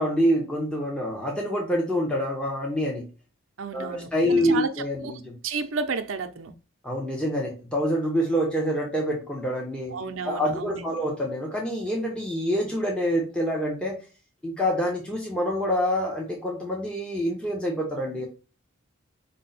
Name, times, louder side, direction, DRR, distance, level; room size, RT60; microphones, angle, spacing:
voice 1, 0.0-3.1 3.7-5.3 6.8-10.0 10.2-14.0 14.4-18.3, equal, 5° left, 0.8 m, -26 dB
voice 2, 3.6-4.7 5.0-5.1 5.4-6.5 9.9-10.9, right 5 dB, 90° right, 0.6 m, -31 dB
5.3 x 2.2 x 4.0 m
head